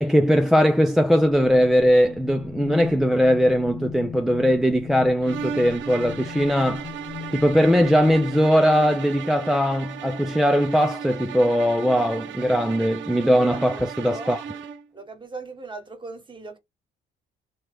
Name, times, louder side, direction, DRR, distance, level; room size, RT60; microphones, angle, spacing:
voice 1, 0.0-6.9 7.3-14.4, equal, ahead, 0.4 m, -20 dB
sound 1, 1.1-8.7, left 7 dB, 90° left, 0.8 m, -39 dB
sound 2, 5.2-14.9, right 8 dB, 70° right, 0.6 m, -36 dB
voice 2, 13.4-13.9 14.1-14.4 14.9-16.6, right 3 dB, 25° right, 1.1 m, -38 dB
3.1 x 2.2 x 3.3 m
cardioid pair, 90°, 20 cm